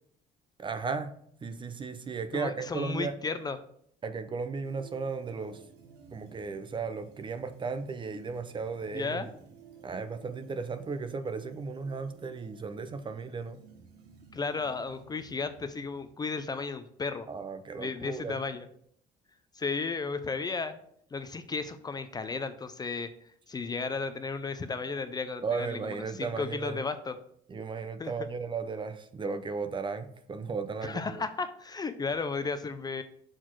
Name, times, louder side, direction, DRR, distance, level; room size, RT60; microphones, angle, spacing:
voice 1, 0.6-1.1 1.4-3.2 4.0-5.6 6.1-9.3 9.8-13.6 17.3-18.4 25.4-26.8 27.5-31.1, right 4 dB, 30° right, 10 dB, 0.5 m, -35 dB
voice 2, 2.3-3.6 8.9-9.3 14.3-17.3 17.8-18.7 19.6-20.8 21.1-23.1 23.5-25.8 26.1-27.2 28.0-28.1 30.8-33.0, left 4 dB, 25° left, 10 dB, 0.5 m, -34 dB
sound 1, 4.6-16.2, right 5 dB, 90° right, 1.2 m, -55 dB
6.2 x 4.0 x 4.6 m, 0.66 s
cardioid pair, 110°, 17 cm